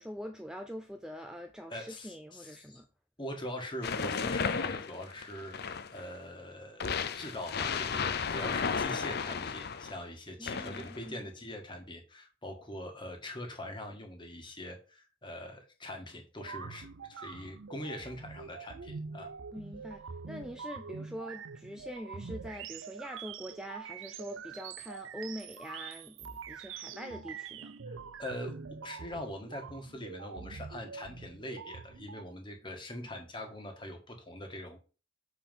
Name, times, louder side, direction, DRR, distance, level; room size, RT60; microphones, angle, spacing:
voice 1, 0.0-2.9 10.4-11.2 19.5-27.7 32.9-33.1, equal, 5° right, 0.5 m, -44 dB
voice 2, 1.7-2.8 3.2-19.3 27.9-34.8, left 1 dB, 25° left, 1.6 m, -43 dB
sound 1, 3.8-6.1 6.8-9.9 10.5-11.1, left 5 dB, 50° left, 0.6 m, -34 dB
sound 2, 16.4-32.2, right 5 dB, 70° right, 0.6 m, -45 dB
7.4 x 4.4 x 5.4 m
head